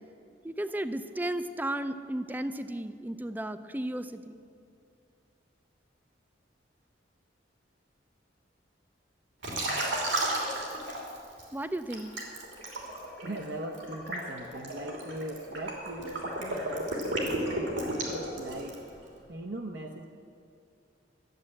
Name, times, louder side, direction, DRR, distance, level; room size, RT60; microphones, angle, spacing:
voice 1, 0.4-4.5 11.5-12.1, right 1 dB, 10° right, 10 dB, 0.4 m, -34 dB
Liquid, 9.4-11.4 11.9-18.9, right 1 dB, 90° right, 3.0 m, -33 dB
voice 2, 13.2-18.8 19.3-20.1, right 1 dB, 65° right, 2 dB, 0.8 m, -40 dB
13.0 x 7.5 x 9.7 m, 2.4 s
head